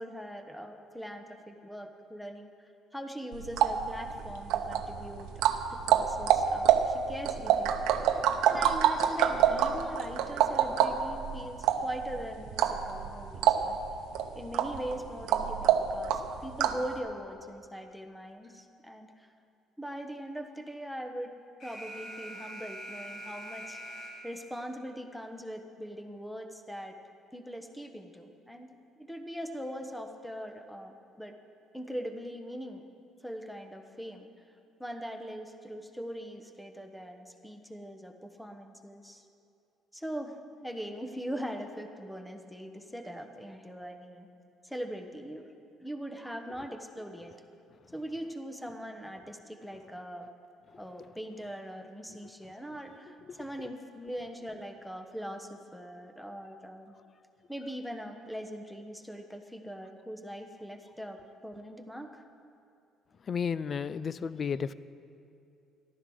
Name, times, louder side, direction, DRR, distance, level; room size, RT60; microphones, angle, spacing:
voice 1, 0.0-2.5 2.9-5.4 5.8-8.0 8.5-13.8 14.3-19.3 19.8-21.3 21.6-27.0 27.3-31.3 31.7-32.8 33.2-34.3 34.8-39.2 39.9-40.4 40.6-44.3 44.6-45.5 45.8-47.3 47.9-50.3 50.8-57.0 57.5-62.2, equal, ahead, 5 dB, 1.1 m, -41 dB
sound 1, 3.3-16.9, right 9 dB, 85° right, 0.8 m, -27 dB
Alarm, 21.6-24.6, equal, 55° left, 2.8 m, -44 dB
voice 2, 63.3-64.7, left 6 dB, 35° left, 17 dB, 0.4 m, -32 dB
14.0 x 12.0 x 6.3 m, 2.5 s
cardioid pair, 130°, 0 cm